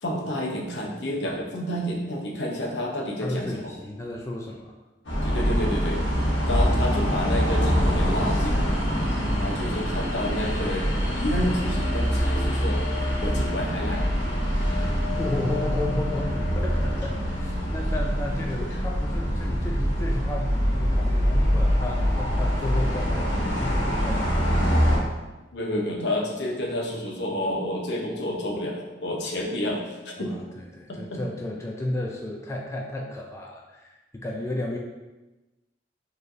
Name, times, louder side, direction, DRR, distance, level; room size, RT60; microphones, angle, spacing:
voice 1, 0.0-3.6 5.2-6.0 6.5-8.7 9.4-12.8 13.2-14.1 25.5-30.4 30.9-31.2, left 1 dB, 70° left, 0 dB, 0.7 m, -29 dB
voice 2, 3.2-4.8 14.7-24.5 30.2-34.8, left 1 dB, 15° left, 0 dB, 0.3 m, -33 dB
sound 1, 5.0-25.0, equal, 85° left, 1.2 m, -24 dB
sound 2, 11.5-17.7 20.0-20.1 20.3-20.4, left 7 dB, 60° right, 0.9 m, -40 dB
4.5 x 3.2 x 2.6 m, 1.1 s
head